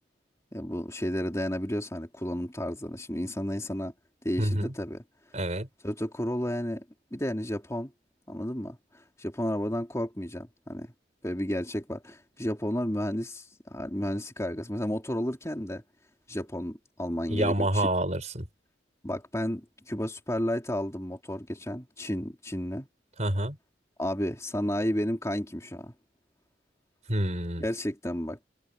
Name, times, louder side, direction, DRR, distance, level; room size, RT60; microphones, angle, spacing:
voice 1, 0.5-3.9 4.2-5.0 5.8-6.8 7.1-7.9 8.3-10.9 11.2-15.8 16.3-17.9 19.0-22.9 24.0-25.9 27.6-28.4, equal, 15° left, 2.9 m, -32 dB
voice 2, 4.4-4.7 5.3-5.7 17.3-18.5 23.2-23.6 27.1-27.6, right 1 dB, 35° right, 5.5 m, -27 dB
head